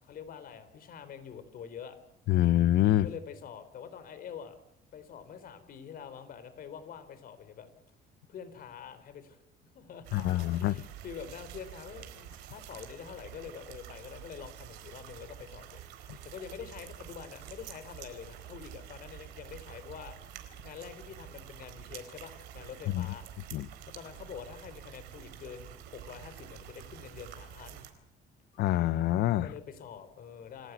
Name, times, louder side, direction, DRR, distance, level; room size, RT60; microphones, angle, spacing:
voice 1, 0.0-2.0 3.0-4.6 4.9-7.7 8.3-9.4 9.7-15.8 16.2-20.2 20.6-23.2 23.9-27.8 29.4-30.7, left 7 dB, 60° left, 3.8 m, -46 dB
voice 2, 2.3-3.1 10.1-10.8 22.9-23.1 23.5-23.7 28.6-29.5, left 14 dB, 80° left, 0.9 m, -25 dB
sound 1, 10.0-27.9, right 11 dB, 90° right, 4.0 m, -48 dB
28.5 x 15.5 x 8.2 m
cardioid pair, 110°, 17 cm